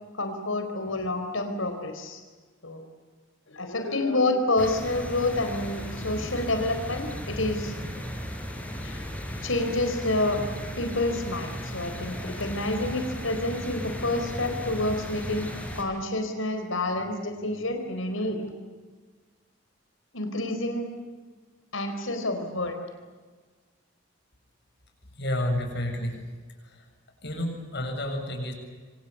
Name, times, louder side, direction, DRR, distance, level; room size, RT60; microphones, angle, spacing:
voice 1, 0.2-2.2 2.6-2.8 3.5-7.7 8.8-9.0 9.4-10.4 10.8-15.5 15.7-18.5 20.1-20.9 21.7-22.8, left 2 dB, 75° left, 6 dB, 4.4 m, -28 dB
sound 1, 4.6-15.8, equal, 10° left, 4.6 m, -36 dB
voice 2, 25.2-26.2 26.6-26.8 27.2-28.5, left 1 dB, 55° left, 4 dB, 7.4 m, -30 dB
28.0 x 25.0 x 8.4 m, 1.4 s
head